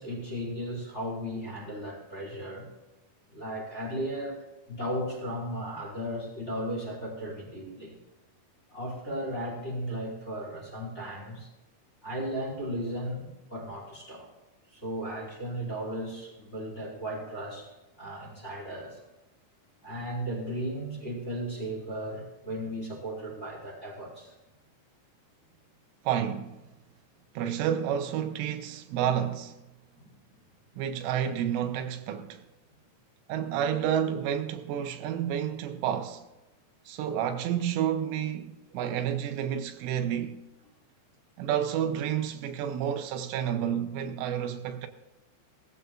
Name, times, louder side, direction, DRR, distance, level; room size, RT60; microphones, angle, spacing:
voice 1, 0.0-2.7 3.3-4.4 4.7-8.0 8.7-11.5 12.0-14.3 14.7-17.7 18.0-19.0 19.8-24.4 30.0-30.1 38.7-38.8, equal, 15° left, 4.3 m, -35 dB
voice 2, 26.0-26.6 27.3-29.6 30.8-32.4 33.3-36.2 36.9-40.4 41.4-44.9, right 9 dB, 85° right, 3.4 m, -30 dB
19.0 x 15.0 x 2.4 m
omnidirectional pair, 5.6 m